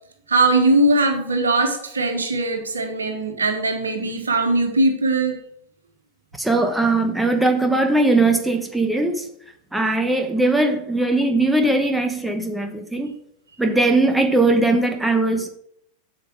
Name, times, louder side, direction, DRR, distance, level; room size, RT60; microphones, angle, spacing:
voice 1, 0.3-5.3, right 2 dB, 75° right, 5 dB, 1.5 m, -20 dB
voice 2, 6.4-9.2 9.7-13.1 13.6-15.5, right 2 dB, 5° right, 5 dB, 1.0 m, -19 dB
8.2 x 7.2 x 4.9 m, 0.72 s
figure-of-eight pair, 90°, 0 cm